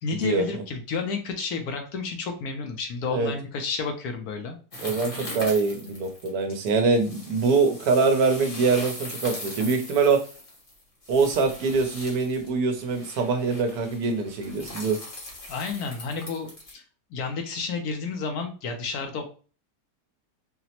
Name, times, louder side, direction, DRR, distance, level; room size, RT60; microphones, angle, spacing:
voice 1, 0.0-4.6 15.5-16.8 17.1-19.3, left 4 dB, 70° left, 5 dB, 1.0 m, -31 dB
sound 1, 4.7-16.7, left 1 dB, 40° left, 0.9 m, -40 dB
voice 2, 4.8-10.2 11.1-15.0, right 4 dB, 70° right, 6 dB, 1.1 m, -24 dB
4.0 x 2.0 x 2.8 m, 0.37 s
omnidirectional pair, 1.8 m